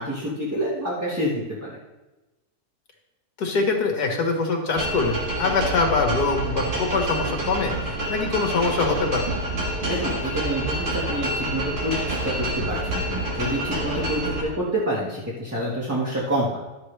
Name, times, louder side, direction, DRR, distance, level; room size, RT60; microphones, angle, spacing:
voice 1, 0.0-1.7 9.9-16.5, equal, 10° right, -8 dB, 1.5 m, -27 dB
voice 2, 3.4-9.2, left 3 dB, 75° left, 2 dB, 1.9 m, -24 dB
sound 1, 4.7-14.4, right 1 dB, 70° right, 2.2 m, -28 dB
12.0 x 7.1 x 3.3 m, 1.1 s
omnidirectional pair, 1.7 m